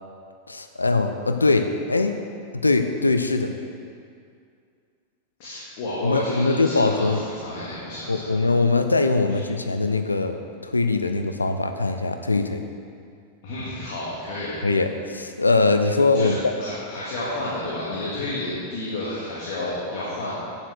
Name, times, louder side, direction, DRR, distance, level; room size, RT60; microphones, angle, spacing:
voice 1, 0.5-2.1 2.5-3.5 6.0-7.2 8.1-12.6 14.6-16.5, left 3 dB, 80° left, 7 dB, 0.5 m, -22 dB
voice 2, 5.4-8.3 9.3-9.4 13.4-14.6 16.1-20.3, left 1 dB, 50° left, -9 dB, 2.3 m, -31 dB
9.1 x 7.5 x 6.3 m, 2.3 s
figure-of-eight pair, 90°, 0 cm